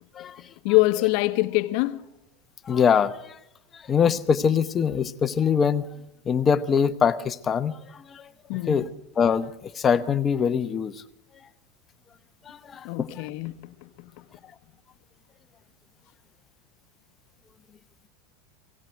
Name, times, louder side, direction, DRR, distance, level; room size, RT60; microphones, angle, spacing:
voice 1, 0.6-2.1 8.5-8.8 12.8-14.2, left 20 dB, 60° left, 0.9 m, -24 dB
voice 2, 2.6-3.4 3.7-5.9 6.2-8.3 8.7-8.9 9.2-11.0 12.4-13.3, left 7 dB, 25° left, 0.9 m, -23 dB
17.5 x 17.5 x 4.6 m
supercardioid pair, 125°, 0 cm